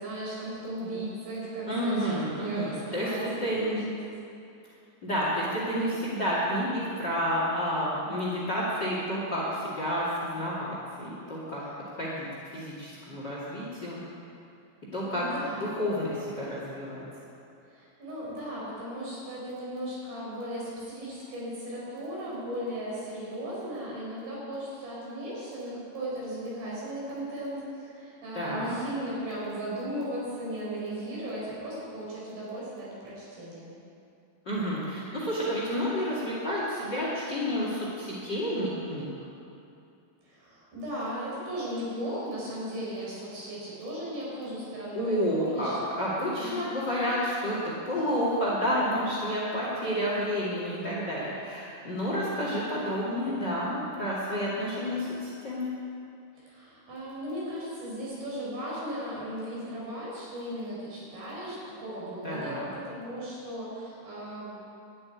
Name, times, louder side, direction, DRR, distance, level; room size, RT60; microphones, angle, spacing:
voice 1, 0.0-4.0 15.0-16.0 17.7-33.7 40.2-45.8 46.4-46.7 56.4-64.5, right 1 dB, 55° right, -6 dB, 5.7 m, -36 dB
voice 2, 1.7-3.1 3.4-3.8 5.0-11.6 11.9-12.3 12.5-14.0 14.9-15.3 15.8-17.0 28.3-28.7 34.4-39.1 44.9-55.7 62.2-62.7, equal, 35° left, -5 dB, 2.1 m, -30 dB
12.5 x 8.9 x 9.7 m, 2.6 s
omnidirectional pair, 5.1 m